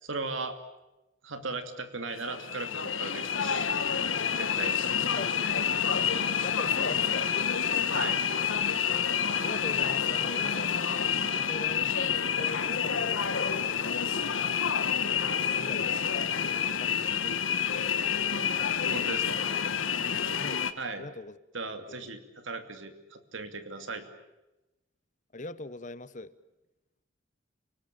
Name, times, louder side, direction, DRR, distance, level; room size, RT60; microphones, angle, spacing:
voice 1, 0.0-0.6 1.2-3.7 4.4-4.8 7.9-8.2 18.9-19.4 20.2-20.3 20.8-21.1 21.5-24.0, right 3 dB, 80° right, 7 dB, 2.8 m, -37 dB
sound 1, 2.1-20.7, left 7 dB, 85° left, 1.4 m, -28 dB
voice 2, 5.0-5.3 5.9-6.0 6.4-7.3 9.4-14.1 15.1-16.1 16.8-17.9 20.4-20.6 20.9-21.4 21.7-22.1 25.3-26.3, left 2 dB, 40° left, 15 dB, 1.0 m, -42 dB
29.5 x 19.5 x 8.8 m, 0.99 s
head